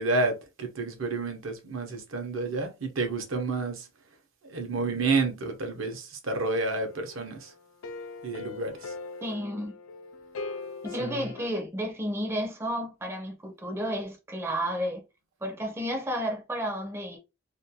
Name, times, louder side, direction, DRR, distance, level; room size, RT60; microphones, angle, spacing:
voice 1, 0.0-3.9 4.4-7.5 8.2-8.9 11.0-11.2, right 3 dB, 75° right, 0.7 m, -30 dB
sound 1, 6.3-11.5, left 4 dB, 80° left, 0.4 m, -41 dB
voice 2, 9.2-9.7 10.8-15.0 15.4-17.2, equal, 10° right, 0.4 m, -32 dB
2.5 x 2.2 x 2.7 m
head